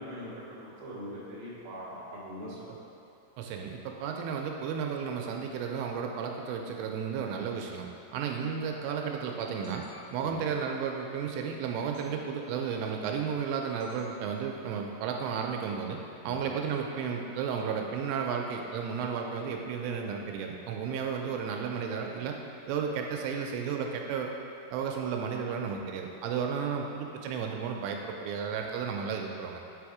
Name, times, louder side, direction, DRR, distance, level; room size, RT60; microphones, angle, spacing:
voice 1, 0.0-2.8 10.2-10.4 16.2-16.4, equal, 60° right, -9 dB, 1.3 m, -42 dB
voice 2, 3.4-7.9 8.1-9.8 10.1-16.0 16.2-22.4 22.7-24.3 24.7-29.6, right 6 dB, 85° right, 2 dB, 2.7 m, -33 dB
sound 1, 9.3-10.5 12.0-12.1 13.8-14.2, left 4 dB, 80° left, 2.5 m, -53 dB
7.9 x 3.5 x 4.8 m, 2.7 s
omnidirectional pair, 5.1 m